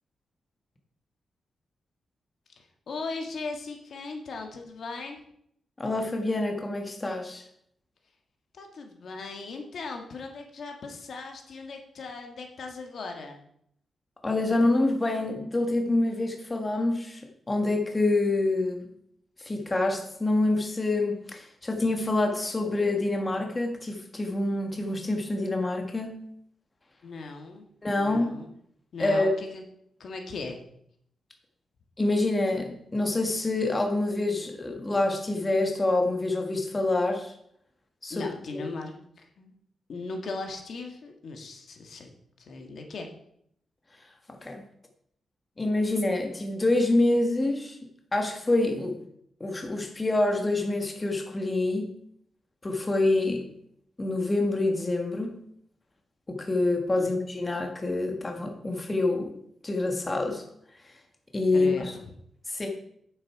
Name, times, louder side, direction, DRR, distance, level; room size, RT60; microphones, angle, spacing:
voice 1, 2.6-5.2 8.5-13.4 27.0-27.6 27.9-28.5 28.9-29.6 30.0-30.6 38.1-39.5 39.9-42.1 42.4-43.1 57.0-57.1 61.5-62.0, left 3 dB, 65° left, 3 dB, 1.6 m, -38 dB
voice 2, 5.8-7.4 14.2-17.2 17.5-18.9 19.4-26.2 27.8-28.3 29.0-29.3 32.0-37.3 38.0-38.6 44.3-44.6 45.6-47.8 48.1-49.0 49.4-51.9 52.6-53.5 54.0-55.3 56.3-59.3 59.6-60.4 61.3-61.9 62.5-62.7, left 2 dB, 25° left, 3 dB, 1.5 m, -26 dB
8.9 x 7.6 x 4.7 m, 0.70 s
cardioid pair, 105°, 0 cm